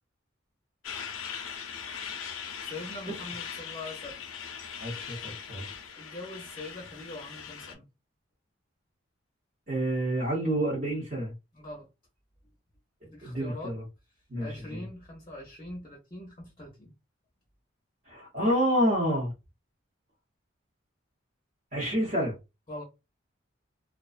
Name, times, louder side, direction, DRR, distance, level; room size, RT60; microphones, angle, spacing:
Truck, 0.8-7.7, left 7 dB, 85° left, 0.5 m, -40 dB
voice 1, 2.6-4.3 6.0-7.8 11.5-11.9 13.0-13.7 14.4-16.9 22.7-22.8, left 2 dB, 25° left, 0.6 m, -42 dB
voice 2, 4.8-5.7 9.7-11.3 13.2-13.8 14.3-14.5 18.1-19.3 21.7-22.4, equal, 40° right, 0.8 m, -28 dB
2.3 x 2.2 x 2.4 m
head